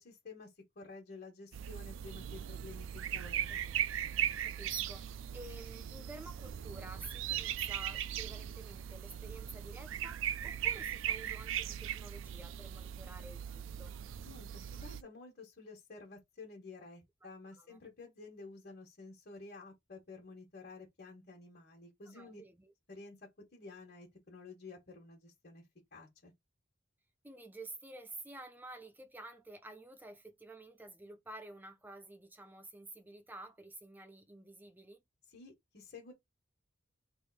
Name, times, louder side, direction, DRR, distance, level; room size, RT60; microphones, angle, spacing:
voice 1, 0.0-3.6 14.2-22.4 22.9-25.6 25.9-26.3 35.3-36.1, left 3 dB, 45° left, 1.4 m, -52 dB
sound 1, 1.5-15.0, right 10 dB, 65° right, 0.3 m, -39 dB
voice 2, 3.1-3.6 4.4-5.1 5.3-14.0 17.2-17.3 17.6-17.8 22.1-22.7 27.2-35.0, right 2 dB, 10° right, 0.5 m, -51 dB
3.5 x 2.6 x 4.1 m
head